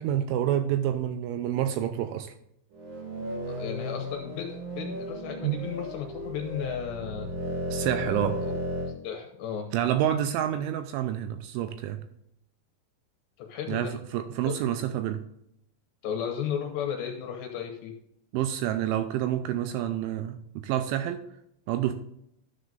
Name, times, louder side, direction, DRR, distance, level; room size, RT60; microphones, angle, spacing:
voice 1, 0.0-2.3 5.4-5.6 7.7-8.4 9.7-12.0 13.7-15.2 18.3-21.2 21.7-21.9, right 11 dB, 85° right, 9 dB, 2.8 m, -28 dB
sound 1, 2.7-8.9, equal, 50° right, 2.1 m, -34 dB
voice 2, 3.5-7.3 8.4-8.5 8.9-9.7 13.4-13.9 14.5-14.6 16.0-17.9, left 8 dB, 75° left, 3 dB, 2.7 m, -34 dB
12.5 x 7.9 x 2.5 m, 0.75 s
omnidirectional pair, 5.8 m